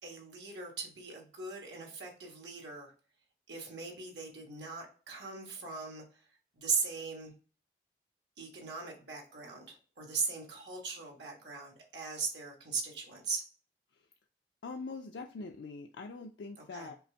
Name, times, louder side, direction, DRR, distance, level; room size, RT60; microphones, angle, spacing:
voice 1, 0.0-2.9 3.5-6.3 6.5-7.3 8.4-13.4 16.7-16.9, right 4 dB, 90° right, 1 dB, 1.5 m, -39 dB
voice 2, 14.6-16.9, left 3 dB, 85° left, 3 dB, 0.4 m, -43 dB
5.5 x 2.5 x 3.4 m, 0.38 s
head